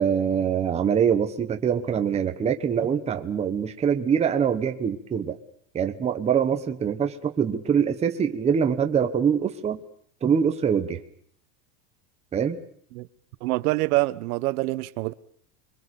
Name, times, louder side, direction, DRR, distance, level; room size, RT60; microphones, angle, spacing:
voice 1, 0.0-5.4 5.7-9.8 10.2-11.0 12.3-12.6, right 7 dB, 15° right, 1.1 m, -24 dB
voice 2, 13.4-15.1, right 20 dB, 70° right, 1.1 m, -25 dB
26.5 x 23.0 x 7.0 m
cardioid pair, 175°, 46 cm